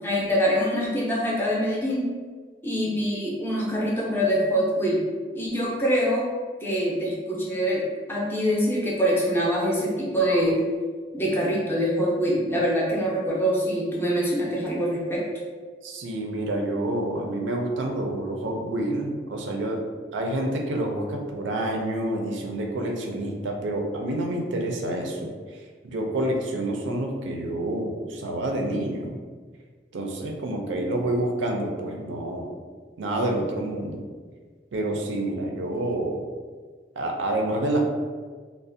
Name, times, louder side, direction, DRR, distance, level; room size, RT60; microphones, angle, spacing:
voice 1, 0.0-2.1 2.6-5.0 5.3-6.3 6.6-10.6 11.1-15.2, equal, 10° left, -5 dB, 0.4 m, -24 dB
voice 2, 15.8-19.8 20.1-25.3 25.8-29.2 29.9-32.5 33.0-34.0 34.7-36.2 37.0-37.8, right 1 dB, 90° right, 2 dB, 0.4 m, -28 dB
2.4 x 2.1 x 2.5 m, 1.5 s
head